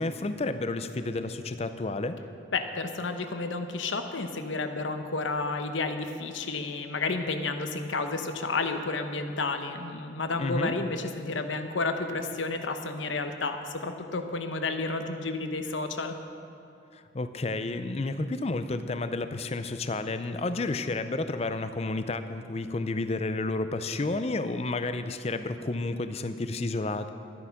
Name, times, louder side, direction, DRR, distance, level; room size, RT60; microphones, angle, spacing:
voice 1, 0.0-2.2 10.4-10.8 16.9-27.1, left 2 dB, 35° left, 10 dB, 0.5 m, -31 dB
voice 2, 2.5-16.1, left 3 dB, 85° left, 7 dB, 0.9 m, -31 dB
12.5 x 9.7 x 5.9 m, 2.7 s
head